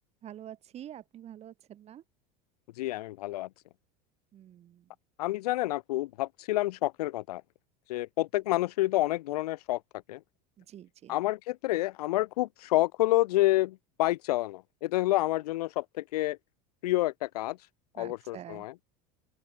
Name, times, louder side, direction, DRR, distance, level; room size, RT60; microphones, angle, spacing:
voice 1, 0.2-2.0 4.3-4.9 10.6-11.2 18.0-18.7, right 11 dB, 35° right, 0.8 m, -47 dB
voice 2, 2.8-3.5 5.2-7.4 7.9-9.8 10.1-10.2 11.1-16.4 16.8-17.6 18.0-18.7, left 17 dB, 85° left, 0.5 m, -28 dB
open air
supercardioid pair, 110°, 19 cm